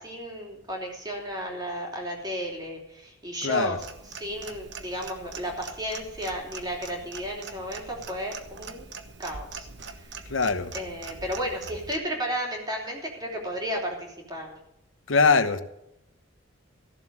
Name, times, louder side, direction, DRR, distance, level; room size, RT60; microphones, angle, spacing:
voice 1, 0.0-3.8 4.1-8.9 9.2-9.7 10.7-14.5, equal, 20° right, 0 dB, 3.2 m, -33 dB
voice 2, 3.4-3.8 10.3-10.7 15.1-15.6, left 4 dB, 70° left, 11 dB, 1.0 m, -22 dB
Clock, 3.8-12.0, right 5 dB, 60° right, 1.1 m, -42 dB
14.5 x 7.3 x 7.6 m, 0.83 s
head